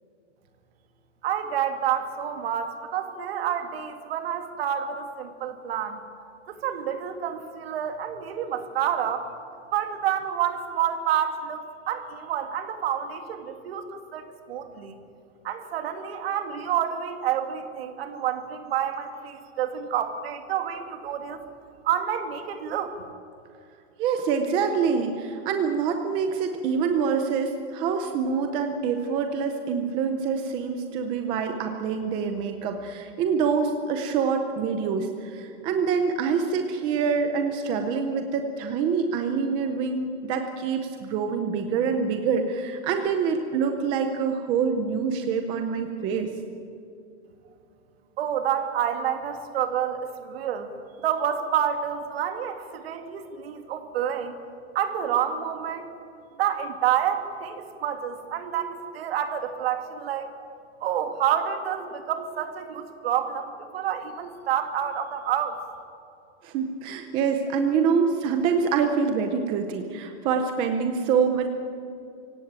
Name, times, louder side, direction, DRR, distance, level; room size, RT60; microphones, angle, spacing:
voice 1, 1.2-6.0 6.5-9.3 9.7-15.0 15.4-21.4 21.8-23.1 48.2-50.7 51.0-54.4 54.7-55.9 56.4-60.3 60.8-65.6, right 9 dB, 50° right, 7 dB, 2.3 m, -28 dB
voice 2, 24.0-46.3 66.4-71.5, right 6 dB, 15° right, 6 dB, 0.6 m, -26 dB
24.5 x 17.0 x 8.9 m, 2.6 s
supercardioid pair, 170°, 38 cm